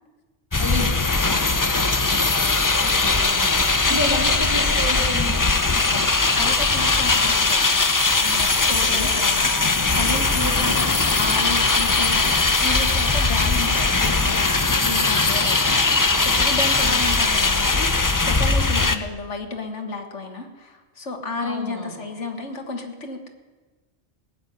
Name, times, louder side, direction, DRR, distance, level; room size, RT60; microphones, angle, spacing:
sound 1, 0.5-19.0, left 3 dB, 20° left, 0.6 m, -20 dB
voice 1, 0.5-1.0 2.8-5.4 7.2-7.6 8.7-9.1 10.5-10.8 13.4-13.6 16.8-17.3 18.9-19.2 21.4-22.0, left 1 dB, 15° right, -1 dB, 3.0 m, -32 dB
voice 2, 1.3-1.6 3.8-4.4 5.7-23.4, left 3 dB, 85° left, 4 dB, 2.0 m, -33 dB
18.5 x 7.4 x 9.4 m, 1.3 s
omnidirectional pair, 1.2 m